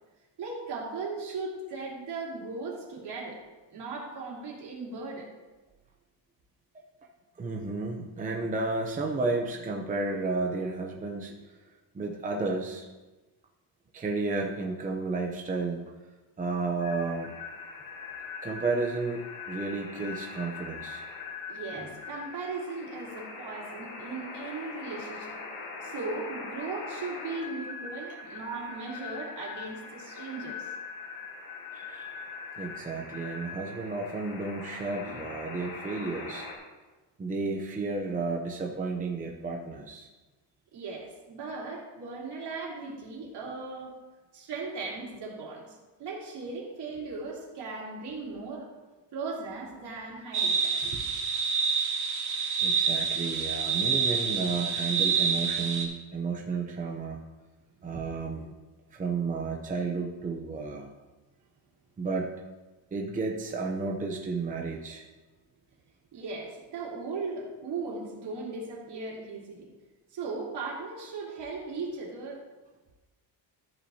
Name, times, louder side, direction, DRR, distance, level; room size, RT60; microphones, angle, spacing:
voice 1, 0.4-3.4 3.7-5.3 21.5-25.4 25.8-30.7 40.7-44.0 44.3-48.7 49.1-51.0 57.9-58.0 66.1-69.7 70.1-72.4, right 3 dB, 55° right, -4 dB, 3.1 m, -37 dB
voice 2, 7.4-11.6 11.9-12.9 13.9-15.8 16.4-17.3 18.4-21.0 31.7-32.1 32.6-36.5 37.2-40.1 52.6-57.2 57.8-58.5 58.9-60.9 62.0-62.3 62.9-65.0, right 3 dB, 15° right, 1 dB, 0.6 m, -32 dB
sound 1, 16.8-36.6, left 4 dB, 75° left, 3.0 m, -42 dB
sound 2, 50.3-55.8, right 5 dB, 85° right, 2.3 m, -27 dB
13.5 x 8.4 x 2.8 m, 1.2 s
cardioid pair, 155°, 47 cm